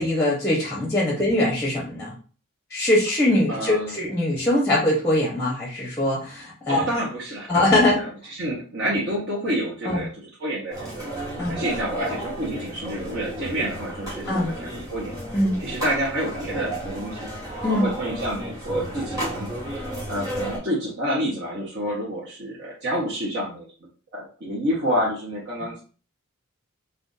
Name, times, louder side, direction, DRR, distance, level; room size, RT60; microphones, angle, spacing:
voice 1, 0.0-2.1 2.7-6.8 7.5-8.0 9.8-10.0 11.4-11.6 14.3-14.5 15.3-15.6 17.6-17.9 25.6-25.7, left 1 dB, 10° left, -4 dB, 0.7 m, -22 dB
voice 2, 3.5-4.0 6.7-11.1 11.5-15.2 15.6-17.3 17.7-19.8 20.1-23.7 24.1-25.8, equal, 50° right, -5 dB, 0.8 m, -28 dB
sound 1, 10.7-20.6, right 1 dB, 15° right, 1.3 m, -32 dB
2.4 x 2.3 x 3.8 m, 0.38 s
head